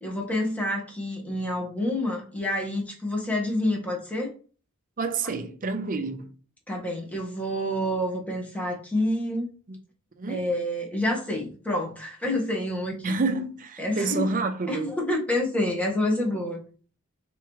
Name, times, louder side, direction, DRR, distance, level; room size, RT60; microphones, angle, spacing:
voice 1, 0.0-4.3 6.7-9.5 10.3-13.1 13.8-14.3 14.7-16.6, left 1 dB, 5° left, 1.3 m, -28 dB
voice 2, 5.0-6.3 9.7-9.8 10.2-10.5 13.0-15.0, right 3 dB, 40° right, 0.6 m, -29 dB
4.6 x 3.5 x 3.1 m
head